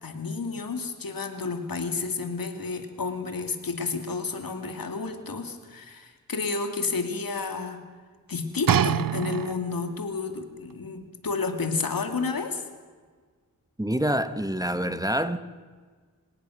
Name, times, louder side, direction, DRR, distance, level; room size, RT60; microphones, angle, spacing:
voice 1, 0.0-7.8 8.3-12.6, left 4 dB, 80° left, 2.6 m, -31 dB
sound 1, 8.7-9.9 10.7-10.8, right 9 dB, 75° right, 0.6 m, -25 dB
voice 2, 13.8-15.4, equal, 10° right, 1.2 m, -26 dB
26.5 x 17.5 x 6.4 m
wide cardioid pair, 60°, 34 cm